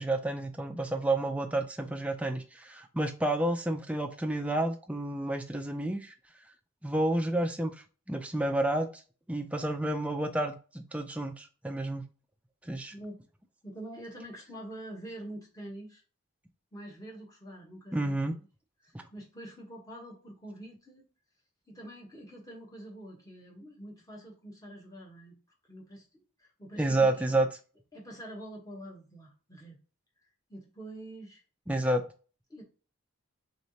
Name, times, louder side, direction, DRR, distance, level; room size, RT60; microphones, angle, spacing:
voice 1, 0.0-6.1 6.8-7.7 8.1-8.9 9.3-12.0 12.6-12.9 17.9-18.3 18.9-19.0 26.8-27.5 31.7-32.0, right 1 dB, 5° right, 4 dB, 0.3 m, -30 dB
voice 2, 12.9-13.3 13.6-16.0 16.7-18.5 18.8-21.1 21.7-25.4 25.7-27.4 27.9-29.8 30.5-31.4 31.7-31.9 32.5-32.6, right 1 dB, 15° left, -2 dB, 0.9 m, -46 dB
3.5 x 3.2 x 2.7 m, 0.36 s
head